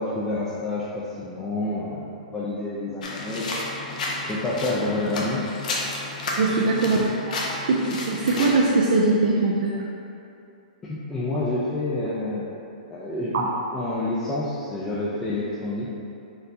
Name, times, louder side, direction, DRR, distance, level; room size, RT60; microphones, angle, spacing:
voice 1, 0.0-3.7 4.3-5.5 10.8-12.5 12.9-15.9, left 2 dB, 10° left, -8 dB, 0.5 m, -28 dB
sound 1, 3.0-8.5, left 2 dB, 70° left, 0.8 m, -31 dB
voice 2, 6.4-7.3 7.7-9.7 13.3-13.4, right 3 dB, 70° right, -2 dB, 0.4 m, -21 dB
4.4 x 3.8 x 2.7 m, 2.7 s
hypercardioid pair, 140°, 4 cm